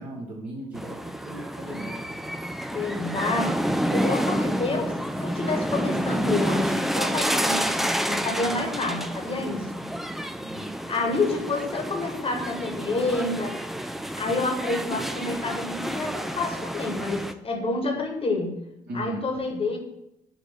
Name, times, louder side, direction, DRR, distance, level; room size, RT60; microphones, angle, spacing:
voice 1, 0.0-2.0 10.4-10.7 18.9-19.2, right 1 dB, 45° right, -4 dB, 1.2 m, -37 dB
sound 1, 0.7-17.3, equal, ahead, 0.3 m, -29 dB
voice 2, 2.7-4.9 5.2-9.9 10.9-13.6 14.2-18.5 18.9-19.8, left 3 dB, 30° left, 3 dB, 1.3 m, -28 dB
7.4 x 3.0 x 5.5 m, 0.84 s
figure-of-eight pair, 50°, 21 cm